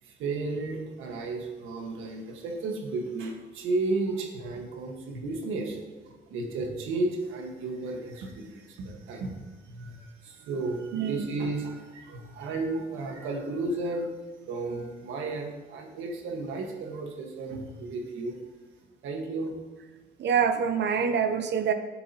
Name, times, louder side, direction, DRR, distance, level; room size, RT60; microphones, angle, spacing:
voice 1, 0.0-14.1 14.5-18.4 19.0-19.6, right 2 dB, 90° right, 1 dB, 1.6 m, -33 dB
voice 2, 10.9-11.3 20.2-21.7, right 7 dB, 60° right, 8 dB, 0.8 m, -25 dB
10.5 x 7.2 x 2.9 m, 1.3 s
cardioid pair, 90°, 20 cm